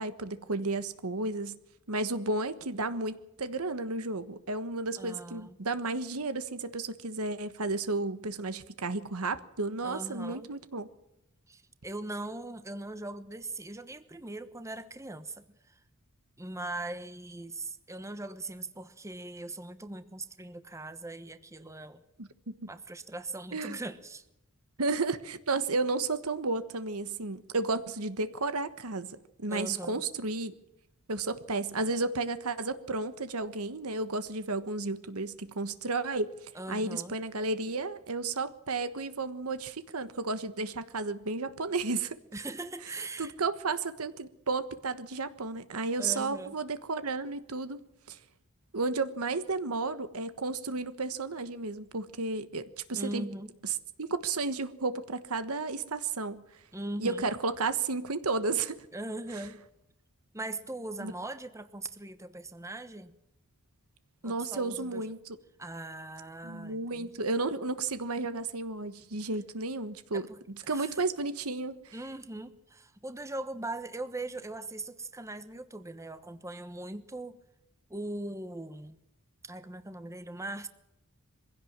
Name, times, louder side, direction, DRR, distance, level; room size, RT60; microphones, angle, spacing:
voice 1, 0.0-1.6 1.9-10.9 22.2-22.7 23.5-23.8 24.8-30.5 31.1-36.3 36.7-42.2 43.2-47.8 48.1-48.2 48.7-53.3 54.0-56.4 57.0-58.8 61.0-61.1 64.2-65.4 66.4-71.9, right 3 dB, 85° right, 12 dB, 1.3 m, -33 dB
voice 2, 5.0-5.6 9.8-10.5 11.5-15.8 16.4-22.0 22.7-24.2 29.5-30.0 36.5-37.2 42.3-43.3 46.0-46.6 52.9-53.5 56.7-57.3 58.9-59.6 60.3-63.1 64.2-65.1 65.6-67.1 70.1-71.0 71.9-77.4 77.9-79.0 79.4-80.7, right 2 dB, 15° right, 11 dB, 1.1 m, -40 dB
23.0 x 16.5 x 7.4 m, 0.86 s
head